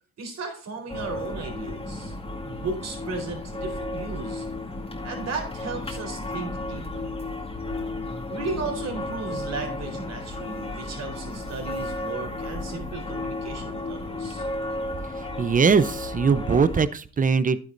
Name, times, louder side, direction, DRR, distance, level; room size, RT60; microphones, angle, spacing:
voice 1, 0.2-2.1 2.4-4.4 5.0-7.2 8.3-14.5, right 4 dB, 60° right, 3 dB, 4.1 m, -35 dB
sound 1, 0.9-16.9, left 2 dB, 20° left, 2.2 m, -33 dB
voice 2, 15.4-17.6, right 5 dB, 25° right, 15 dB, 0.7 m, -21 dB
11.0 x 9.5 x 2.6 m, 0.42 s
cardioid pair, 90°, 30 cm